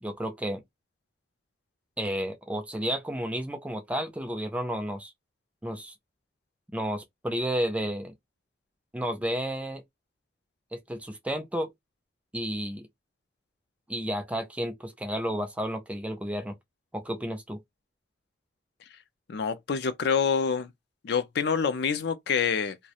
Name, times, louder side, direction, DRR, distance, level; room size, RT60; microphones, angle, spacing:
voice 1, 0.0-0.6 2.0-5.1 5.6-5.9 6.7-8.1 8.9-9.8 10.7-11.7 12.3-12.9 13.9-16.6 16.9-17.6, equal, 5° right, 0.4 m, -32 dB
voice 2, 19.3-20.7 21.0-22.8, left 6 dB, 60° left, 0.4 m, -26 dB
2.3 x 2.0 x 2.7 m
head